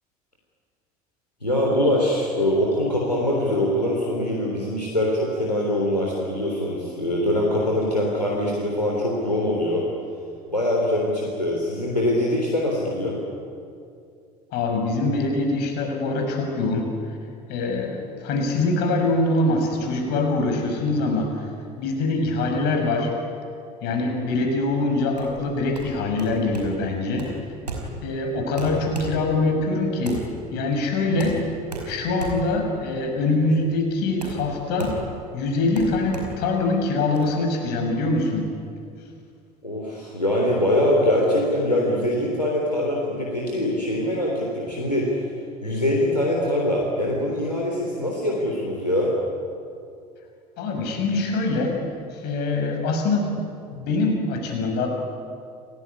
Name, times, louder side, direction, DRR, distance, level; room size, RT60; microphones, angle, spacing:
voice 1, 1.4-9.9 10.5-13.2 27.9-28.0 39.6-45.2 45.6-49.1, left 1 dB, 90° left, -2 dB, 3.6 m, -23 dB
voice 2, 14.5-16.9 17.5-21.5 21.7-23.1 23.8-27.3 28.0-31.5 31.8-35.0 35.3-38.5 50.6-51.7 52.1-53.4 53.7-54.9, left 2 dB, 55° left, 3 dB, 6.8 m, -24 dB
sound 1, 25.1-37.2, right 2 dB, 85° right, 5.0 m, -36 dB
29.5 x 19.5 x 9.7 m, 2.4 s
figure-of-eight pair, 65°, 20 cm